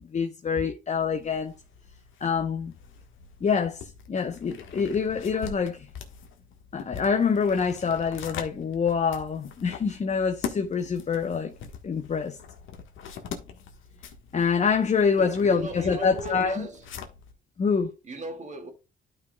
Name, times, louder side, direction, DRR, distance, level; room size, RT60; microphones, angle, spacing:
voice 1, 0.1-1.5 2.2-2.7 3.4-5.9 6.7-11.5 11.8-12.4 14.3-16.7 17.6-17.9, left 6 dB, 35° left, 0.8 m, -26 dB
sound 1, 1.0-17.3, left 7 dB, 80° left, 1.4 m, -43 dB
voice 2, 15.2-16.9 18.0-18.7, right 2 dB, 35° right, 2.1 m, -36 dB
12.0 x 5.5 x 2.3 m
cardioid pair, 90°, 20 cm